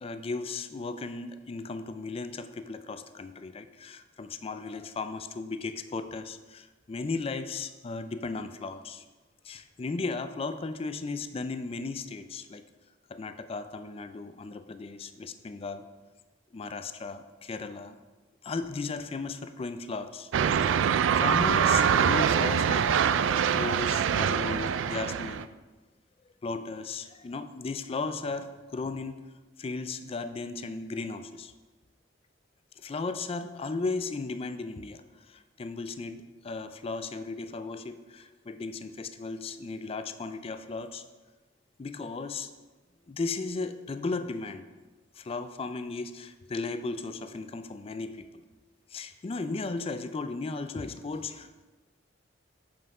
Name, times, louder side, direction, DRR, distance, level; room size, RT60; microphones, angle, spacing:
voice 1, 0.0-9.0 9.4-12.6 13.1-15.9 16.5-18.0 18.4-20.7 21.2-22.9 23.5-25.5 26.4-29.2 29.6-31.5 32.8-41.0 41.8-42.5 43.1-44.7 45.2-48.3 48.9-51.6, left 3 dB, 30° left, 10 dB, 0.4 m, -36 dB
sound 1, 20.3-25.4, right 7 dB, 90° right, 0.3 m, -24 dB
7.7 x 5.5 x 4.7 m, 1.3 s
head